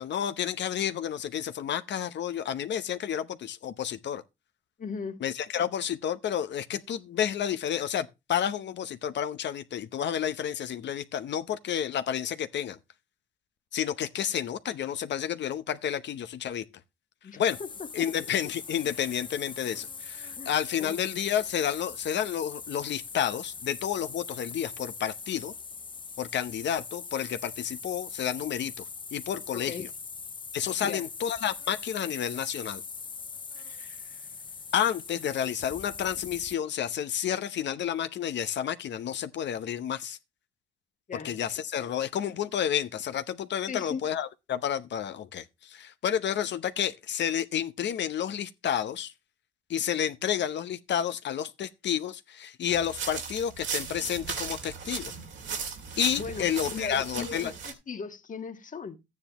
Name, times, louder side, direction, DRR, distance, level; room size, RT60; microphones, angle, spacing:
voice 1, 0.0-4.2 5.2-12.8 13.7-16.6 17.4-17.6 17.9-25.5 26.2-28.8 29.1-29.9 30.5-32.8 33.8-34.0 34.7-40.2 41.2-49.1 49.7-55.1 56.0-57.5, left 9 dB, 65° left, 0.9 m, -30 dB
voice 2, 4.8-5.2 17.2-18.1 20.4-21.0 29.5-29.9 30.8-31.0 41.1-41.4 43.7-44.0 56.2-59.0, left 5 dB, 40° left, 1.5 m, -38 dB
sound 1, 17.5-36.6, left 5 dB, 25° left, 0.5 m, -41 dB
sound 2, 52.7-57.7, right 5 dB, 70° right, 2.6 m, -36 dB
13.0 x 9.6 x 3.0 m
cardioid pair, 90°, 20 cm